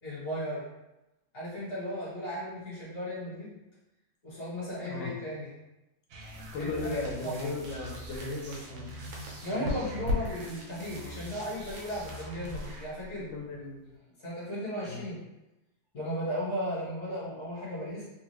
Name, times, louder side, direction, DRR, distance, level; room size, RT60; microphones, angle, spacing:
voice 1, 0.0-0.6 1.3-3.6 4.2-5.5 6.6-7.5 9.4-13.3 14.2-15.2 15.9-18.0, equal, 50° left, -9 dB, 1.6 m, -36 dB
voice 2, 4.8-5.2 6.5-9.0 9.4-10.1 13.3-13.9 14.9-15.2, left 3 dB, 90° left, -1 dB, 1.5 m, -37 dB
sound 1, 6.1-12.8, right 1 dB, 70° right, 0.8 m, -46 dB
sound 2, 6.2-14.0, left 2 dB, 90° right, 1.5 m, -40 dB
3.6 x 2.4 x 3.1 m, 0.98 s
omnidirectional pair, 2.0 m